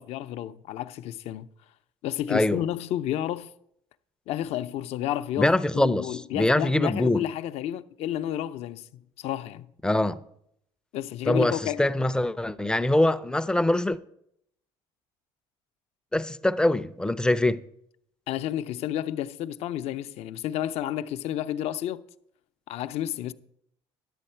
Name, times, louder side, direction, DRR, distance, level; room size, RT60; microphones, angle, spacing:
voice 1, 0.0-1.5 2.0-3.5 4.3-9.7 10.9-11.9 18.3-22.0 22.7-23.3, left 11 dB, 65° left, 0.5 m, -31 dB
voice 2, 2.3-2.6 5.4-7.2 9.8-10.2 11.3-14.0 16.1-17.6, left 1 dB, 5° left, 0.4 m, -23 dB
11.0 x 7.7 x 4.4 m
supercardioid pair, 90°, 12 cm